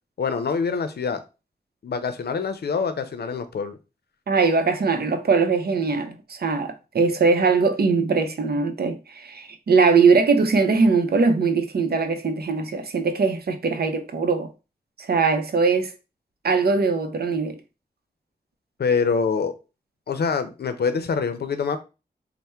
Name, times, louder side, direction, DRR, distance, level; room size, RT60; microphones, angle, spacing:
voice 1, 0.2-1.2 1.8-3.8 18.8-19.5 20.1-21.8, left 5 dB, 90° left, 0.5 m, -25 dB
voice 2, 4.3-14.5 15.0-15.9 16.4-17.6, right 4 dB, 75° right, 0.6 m, -21 dB
3.4 x 2.1 x 4.3 m
wide cardioid pair, 75°, 16 cm